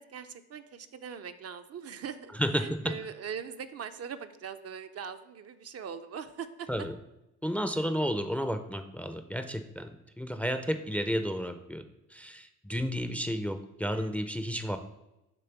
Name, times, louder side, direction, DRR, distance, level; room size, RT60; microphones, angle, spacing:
voice 1, 0.0-6.7 7.7-7.8 13.9-14.2, right 7 dB, 55° right, 9 dB, 0.5 m, -41 dB
voice 2, 2.4-2.9 6.7-6.9 7.4-9.9 10.2-11.8 12.1-14.8, equal, 5° left, 9 dB, 0.4 m, -32 dB
6.8 x 3.6 x 5.8 m, 0.93 s
cardioid pair, 105°, 30 cm